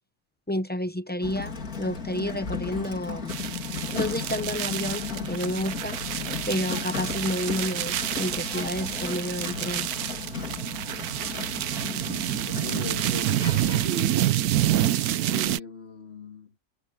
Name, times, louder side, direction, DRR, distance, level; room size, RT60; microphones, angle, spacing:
voice 1, 0.5-3.3 3.9-6.0 6.5-9.9, left 1 dB, 15° left, 0.3 m, -30 dB
Sliding door, 1.2-13.9, left 4 dB, 70° left, 3.8 m, -35 dB
sound 1, 3.3-15.6, right 12 dB, 80° right, 1.2 m, -28 dB
voice 2, 12.5-13.5 13.8-14.2 15.3-16.5, left 2 dB, 40° left, 2.2 m, -38 dB
omnidirectional pair, 1.6 m